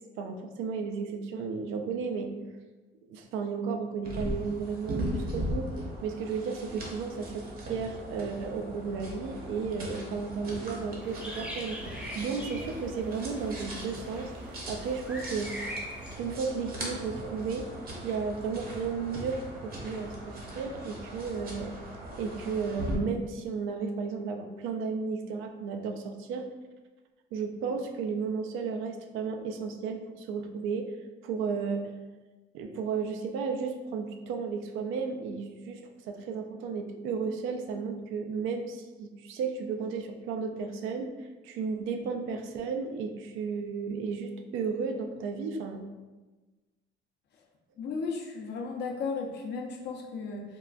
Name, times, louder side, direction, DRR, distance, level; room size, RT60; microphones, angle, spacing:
voice 1, 0.2-2.3 3.1-5.7 6.0-15.5 16.2-17.7 18.0-21.7 22.1-26.5 27.3-30.9 31.2-31.9 32.5-45.8, right 5 dB, 85° right, 5 dB, 0.4 m, -34 dB
sound 1, 4.0-23.0, equal, 50° right, 0.8 m, -39 dB
sound 2, 11.0-16.2, equal, 5° right, 0.6 m, -43 dB
voice 2, 47.8-50.4, left 4 dB, 60° left, 1 dB, 0.6 m, -35 dB
3.6 x 2.1 x 2.4 m, 1.2 s
cardioid pair, 115°, 20 cm